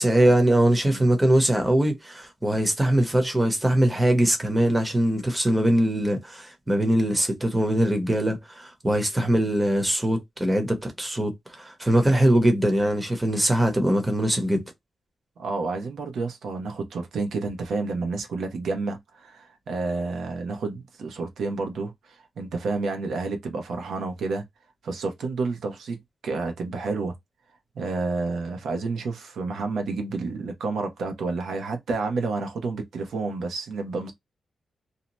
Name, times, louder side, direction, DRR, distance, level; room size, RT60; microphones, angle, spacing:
voice 1, 0.0-14.6, right 1 dB, 10° right, 0.8 m, -22 dB
voice 2, 15.4-24.4 24.8-27.1 27.7-34.1, right 3 dB, 85° right, 0.8 m, -30 dB
2.7 x 2.2 x 2.9 m
wide cardioid pair, 150°, 0 cm